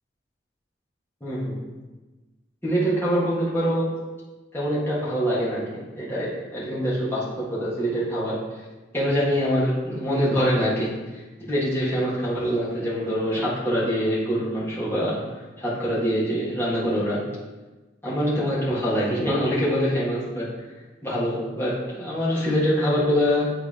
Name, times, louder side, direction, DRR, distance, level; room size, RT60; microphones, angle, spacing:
voice 1, 1.2-1.6 2.6-4.0 4.5-8.4 8.9-11.2 11.5-15.2 15.6-17.3 18.0-20.5 21.0-23.5, equal, 15° left, -9 dB, 1.7 m, -24 dB
8.7 x 3.7 x 3.6 m, 1.2 s
head